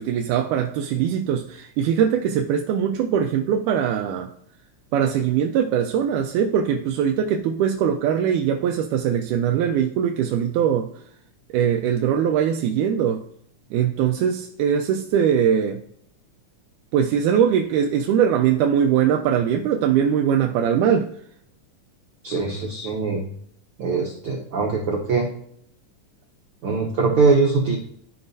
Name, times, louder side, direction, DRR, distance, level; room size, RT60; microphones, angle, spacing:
voice 1, 0.0-4.3 4.9-10.9 11.5-13.2 13.7-15.8 16.9-21.1, right 8 dB, 90° right, 2.1 m, -21 dB
voice 2, 22.2-23.2 23.8-25.3 26.6-27.8, right 4 dB, 70° right, 1.3 m, -22 dB
13.5 x 4.8 x 2.7 m
omnidirectional pair, 3.5 m